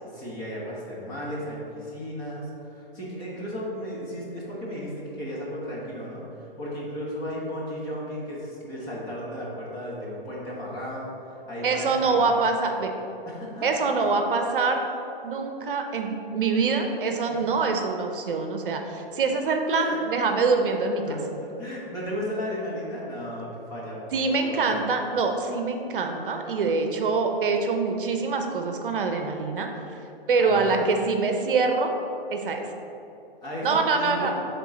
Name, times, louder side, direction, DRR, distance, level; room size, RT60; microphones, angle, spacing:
voice 1, 0.0-12.3 13.2-13.7 17.3-17.4 19.7-20.0 21.1-24.7 30.4-30.7 33.4-34.5, equal, 15° left, -5 dB, 0.8 m, -34 dB
voice 2, 11.6-12.9 13.6-14.8 15.2-16.1 16.3-21.0 24.1-29.7 30.3-31.9 32.3-32.6 33.6-34.3, right 4 dB, 60° right, 4 dB, 0.7 m, -24 dB
7.2 x 3.8 x 4.0 m, 3.0 s
hypercardioid pair, 155°, 30 cm